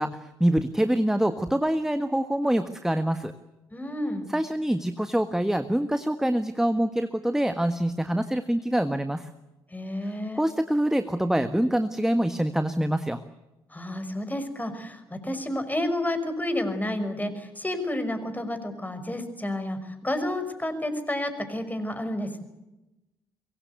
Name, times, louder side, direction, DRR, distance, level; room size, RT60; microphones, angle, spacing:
voice 1, 0.0-3.3 4.3-9.3 10.0-13.2, right 1 dB, 5° right, 10 dB, 1.5 m, -25 dB
voice 2, 3.7-4.3 9.7-10.4 13.7-22.4, left 1 dB, 15° left, 9 dB, 5.8 m, -30 dB
23.5 x 23.5 x 8.3 m, 0.98 s
figure-of-eight pair, 40°, 12 cm